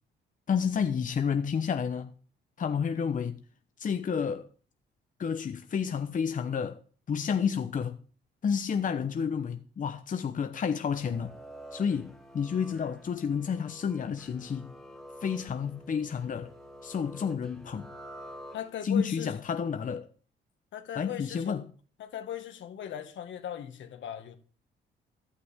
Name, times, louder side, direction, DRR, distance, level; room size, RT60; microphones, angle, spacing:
voice 1, 0.5-2.1 2.6-3.4 3.8-4.5 5.2-6.8 7.1-8.0 8.4-11.4 11.7-14.7 15.2-16.5 16.8-17.9 18.8-20.1 21.0-21.6, left 6 dB, 40° left, 0.9 m, -30 dB
sound 1, 10.8-19.0, equal, ahead, 2.5 m, -49 dB
voice 2, 18.5-19.3 20.7-21.7 22.0-24.4, left 10 dB, 70° left, 1.8 m, -38 dB
15.0 x 11.0 x 3.6 m
cardioid pair, 90°, 20 cm